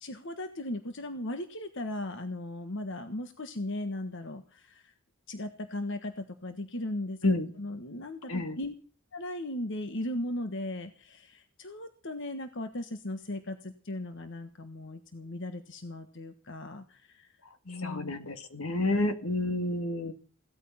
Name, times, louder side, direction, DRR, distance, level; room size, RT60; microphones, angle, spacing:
voice 1, 0.0-4.9 5.3-7.3 7.6-8.7 9.1-17.3 17.6-18.1 18.8-19.1, left 1 dB, 60° left, 8 dB, 1.4 m, -37 dB
voice 2, 17.8-20.1, left 2 dB, 80° left, 9 dB, 2.1 m, -29 dB
17.0 x 13.0 x 5.7 m, 0.41 s
head